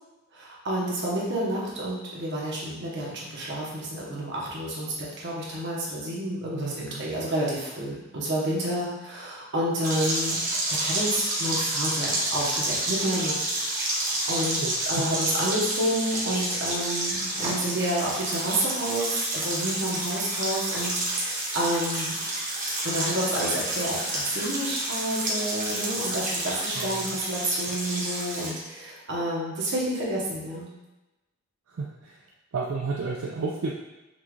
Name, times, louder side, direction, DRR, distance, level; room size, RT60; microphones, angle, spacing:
voice 1, 0.3-10.4 10.7-13.4 13.9-14.6 14.9-22.1 22.8-30.7, right 1 dB, 60° right, -5 dB, 1.2 m, -29 dB
voice 2, 6.5-7.1 14.6-15.1 26.7-27.2 31.7-32.2 32.5-33.7, right 4 dB, 80° right, -1 dB, 0.4 m, -32 dB
sound 1, 9.8-28.5, right 1 dB, 40° right, 1.0 m, -29 dB
5.7 x 2.5 x 3.1 m, 1.0 s
head